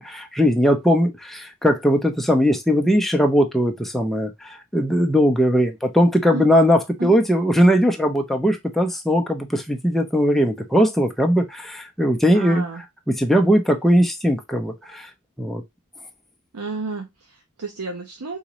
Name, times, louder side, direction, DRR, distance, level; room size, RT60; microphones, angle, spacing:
voice 1, 0.0-12.6 13.2-15.1 15.4-15.6, equal, ahead, 0.5 m, -19 dB
voice 2, 12.3-12.8 16.5-18.4, right 3 dB, 85° right, 0.7 m, -31 dB
4.0 x 2.6 x 3.0 m
head